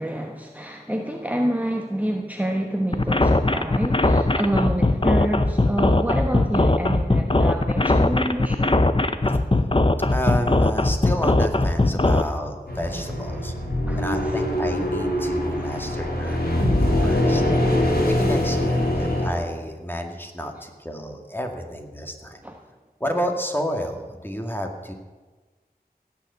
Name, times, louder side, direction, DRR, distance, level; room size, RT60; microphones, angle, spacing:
voice 1, 0.0-8.8 13.3-13.4 13.9-14.3 15.6-15.9 22.4-22.6, right 1 dB, 10° right, 2 dB, 1.2 m, -28 dB
sound 1, 2.9-12.2, left 2 dB, 35° left, 0.8 m, -19 dB
voice 2, 10.1-13.5 14.0-16.4 17.0-17.4 18.1-22.4 23.0-24.9, equal, 15° left, 3 dB, 2.1 m, -30 dB
sound 2, 12.7-19.3, left 1 dB, 75° left, 3.5 m, -23 dB
16.5 x 7.1 x 8.1 m, 1.3 s
wide cardioid pair, 45°, 16 cm